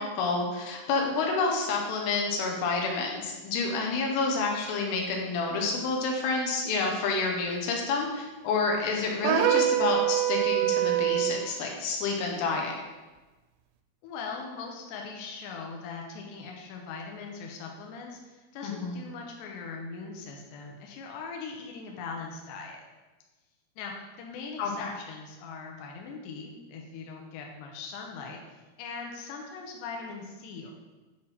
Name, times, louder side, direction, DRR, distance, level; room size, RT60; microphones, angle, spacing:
voice 1, 0.0-12.8 18.6-19.0 24.6-24.9, left 4 dB, 90° left, 1 dB, 3.8 m, -29 dB
sound 1, 9.2-11.5, right 12 dB, 85° right, 2.5 m, -24 dB
voice 2, 14.0-22.8 23.8-30.7, left 4 dB, 75° left, 0 dB, 3.0 m, -40 dB
9.8 x 4.1 x 5.7 m, 1.2 s
omnidirectional pair, 5.5 m